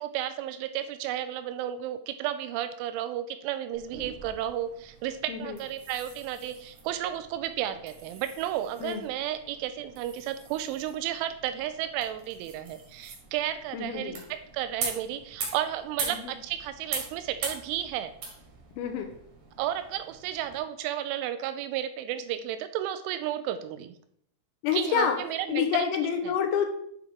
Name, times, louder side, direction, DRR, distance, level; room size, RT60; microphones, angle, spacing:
voice 1, 0.0-18.1 19.6-23.9 24.7-25.9 26.3-26.4, right 11 dB, 85° right, 10 dB, 2.9 m, -33 dB
sound 1, 3.7-20.6, right 4 dB, 60° right, 2.2 m, -42 dB
voice 2, 5.3-5.6 8.8-9.0 13.7-14.2 16.0-16.3 18.8-19.1 24.6-25.2 25.5-26.7, left 7 dB, 80° left, 5 dB, 2.9 m, -28 dB
9.1 x 3.6 x 4.6 m, 0.69 s
omnidirectional pair, 5.6 m